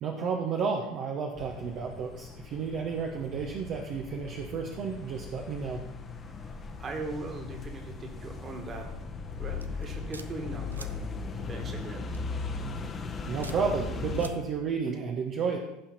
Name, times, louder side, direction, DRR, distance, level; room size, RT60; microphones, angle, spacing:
voice 1, 0.0-5.8 13.3-15.6, right 5 dB, 45° right, 1 dB, 1.1 m, -32 dB
sound 1, 1.4-14.3, left 4 dB, 30° left, 1.2 m, -38 dB
voice 2, 6.2-8.9 9.4-10.9 11.4-12.1, right 3 dB, 30° right, 3 dB, 2.2 m, -40 dB
sound 2, 9.6-10.3 10.7-10.9 12.1-12.4 13.4-13.6 14.1-14.3, right 4 dB, 90° right, 0.5 m, -45 dB
15.5 x 5.8 x 4.2 m, 0.87 s
figure-of-eight pair, 75°, 0 cm